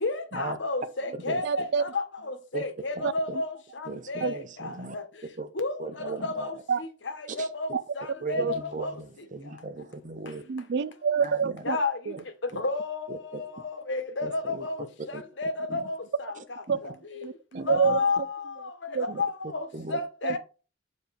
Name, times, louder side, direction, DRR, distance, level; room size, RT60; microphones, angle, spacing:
voice 1, 0.0-3.5 4.1-4.4 4.6-5.0 5.6-5.8 6.2-6.5 7.4-8.9 11.6-12.0 12.6-14.8 15.4-16.0 17.7-18.4 18.8-19.6 19.9-20.4, left 3 dB, 70° left, 1.2 m, -31 dB
voice 2, 1.4-1.8 3.0-3.1 4.2-4.3 6.7-6.8 7.7-7.8 8.4-8.9 10.5-11.8 12.1-12.2 16.7-16.8 17.2-18.3 18.9-19.1 20.2-20.4, right 6 dB, 60° right, 0.4 m, -27 dB
voice 3, 3.0-3.4 3.9-5.0 5.4-5.5 5.8-6.5 7.4-7.5 8.2-10.4 11.2-11.6 12.5-12.6 13.1-13.4 14.2-14.7 15.1-15.2 15.7-15.9 16.7-16.8 17.5-18.0 19.1-19.2 19.7-20.0, right 3 dB, 40° right, 0.8 m, -38 dB
6.9 x 4.3 x 3.4 m
head